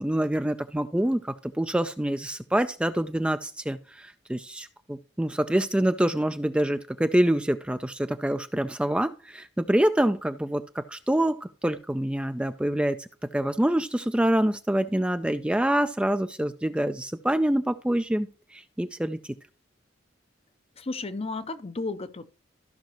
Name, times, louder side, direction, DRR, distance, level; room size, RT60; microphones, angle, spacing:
voice 1, 0.0-13.1 13.3-18.3 18.5-19.2, right 1 dB, 5° right, 0.4 m, -26 dB
voice 2, 20.8-22.3, left 3 dB, 30° left, 0.6 m, -33 dB
14.0 x 5.8 x 3.0 m
head